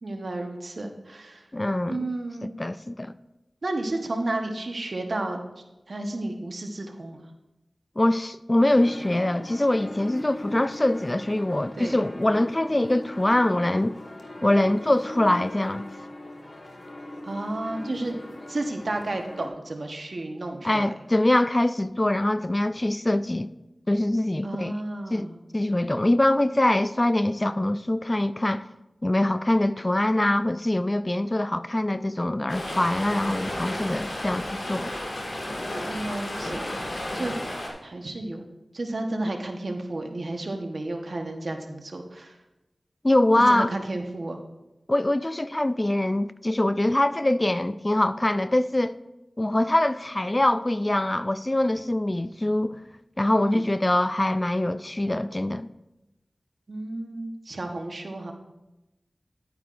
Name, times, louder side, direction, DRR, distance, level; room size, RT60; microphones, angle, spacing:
voice 1, 0.0-1.4 1.9-2.5 3.6-5.4 5.9-7.3 11.8-12.0 17.2-18.2 18.5-20.9 24.4-25.4 35.9-37.3 37.8-42.4 43.5-44.4 53.4-53.7 56.7-58.3, right 2 dB, 70° right, 1.1 m, -32 dB
voice 2, 1.5-2.1 2.6-3.1 8.0-13.9 14.4-15.9 20.6-23.5 23.9-24.7 25.1-28.6 29.0-34.9 43.0-43.7 44.9-48.9 49.4-52.8 53.2-55.7, left 1 dB, 30° left, 0.3 m, -23 dB
sound 1, 8.6-19.5, left 1 dB, 50° left, 1.3 m, -40 dB
Stream, 32.5-37.7, left 1 dB, 85° left, 2.0 m, -32 dB
11.0 x 9.4 x 2.5 m
wide cardioid pair, 45°, 0 cm